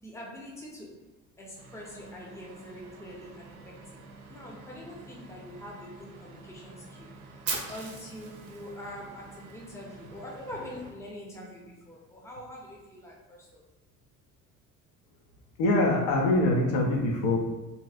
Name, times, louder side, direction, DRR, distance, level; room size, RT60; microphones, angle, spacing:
voice 1, 0.0-1.1 1.4-4.0 4.3-13.6, left 1 dB, 5° left, -3 dB, 0.7 m, -44 dB
sound 1, 1.6-10.9, right 3 dB, 70° right, 0.6 m, -50 dB
Fire, 7.5-9.5, right 4 dB, 35° right, 0.8 m, -37 dB
voice 2, 15.6-17.4, left 2 dB, 55° left, 0 dB, 0.7 m, -24 dB
3.0 x 2.8 x 2.4 m, 1.1 s
figure-of-eight pair, 55°, 43 cm